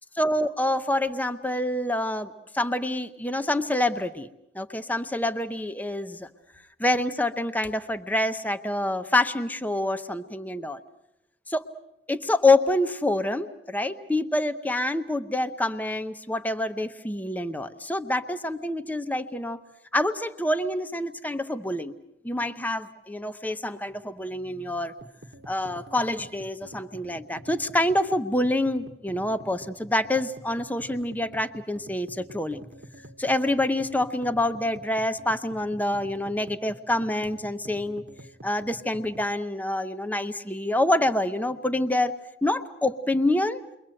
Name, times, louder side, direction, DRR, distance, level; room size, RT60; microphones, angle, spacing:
voice 1, 0.1-4.3 4.5-6.3 6.8-10.8 11.5-11.7 12.1-19.6 19.9-21.9 22.2-24.9 25.5-32.6 33.2-38.0 38.4-42.2 42.4-43.6, left 1 dB, 10° left, 9 dB, 0.9 m, -26 dB
sound 1, 25.0-39.3, right 1 dB, 65° right, 1.3 m, -47 dB
29.5 x 23.0 x 7.8 m, 0.88 s
head